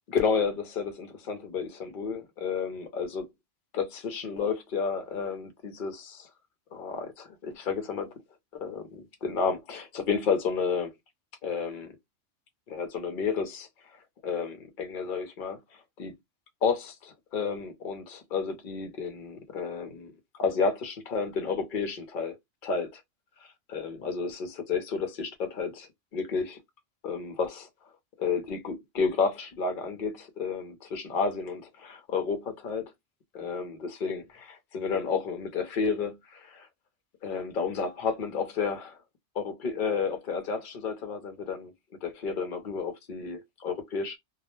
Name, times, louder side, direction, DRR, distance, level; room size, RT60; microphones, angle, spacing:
voice 1, 0.1-3.3 3.7-6.3 6.7-8.1 8.5-10.9 11.4-11.9 12.7-13.7 14.2-15.6 16.0-16.1 16.6-20.1 20.4-22.4 22.6-23.0 23.7-26.6 27.0-27.7 28.2-32.9 33.3-36.7 37.2-39.0 39.3-41.7 42.0-44.2, left 5 dB, 50° left, 0.7 m, -31 dB
2.3 x 2.0 x 3.0 m
omnidirectional pair, 1.3 m